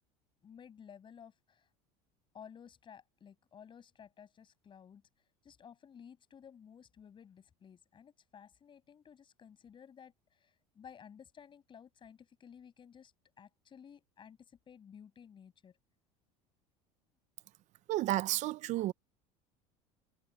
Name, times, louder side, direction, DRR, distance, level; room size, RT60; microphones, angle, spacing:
voice 1, 0.4-1.7 2.3-5.0 5.4-15.8, left 7 dB, 35° left, 7.4 m, -55 dB
voice 2, 17.9-18.9, right 16 dB, 55° right, 0.6 m, -31 dB
supercardioid pair, 110°, 15 cm